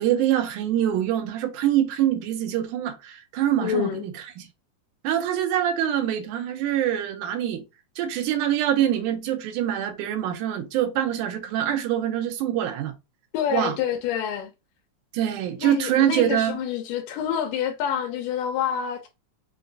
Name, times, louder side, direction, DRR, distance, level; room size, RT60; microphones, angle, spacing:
voice 1, 0.0-4.5 5.0-7.6 8.0-12.9 13.5-13.8 15.1-16.6, right 11 dB, 80° right, 2.1 m, -24 dB
voice 2, 3.6-4.0 13.3-14.5 15.6-19.1, left 9 dB, 85° left, 2.3 m, -27 dB
5.6 x 2.2 x 2.6 m
omnidirectional pair, 3.6 m